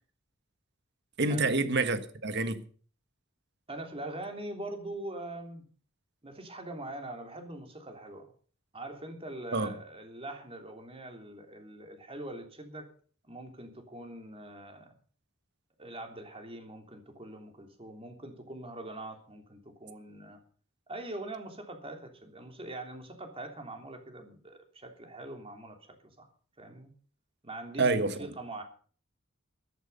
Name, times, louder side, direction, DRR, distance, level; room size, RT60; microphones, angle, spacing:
voice 1, 1.2-2.6 9.5-9.7 27.8-28.3, right 3 dB, 55° right, 1.5 m, -28 dB
voice 2, 3.7-5.6 6.2-8.3 8.7-12.9 13.2-14.9 15.8-20.4 20.9-26.3 26.6-26.9 27.4-28.6, right 1 dB, 30° right, 3.2 m, -43 dB
14.0 x 13.0 x 5.6 m
head